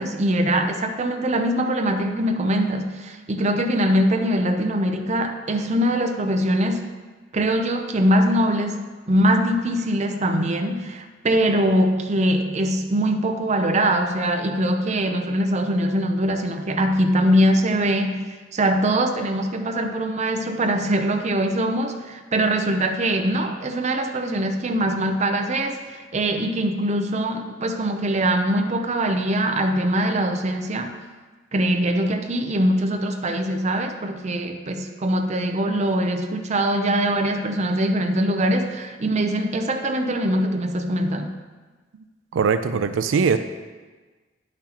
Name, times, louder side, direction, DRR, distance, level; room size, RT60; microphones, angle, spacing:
voice 1, 0.0-6.9 7.3-18.3 18.5-30.9 31.5-41.3, right 1 dB, 35° right, 5 dB, 0.6 m, -22 dB
voice 2, 42.3-43.4, right 5 dB, 90° right, 10 dB, 0.4 m, -20 dB
9.9 x 5.9 x 2.9 m, 1.3 s
head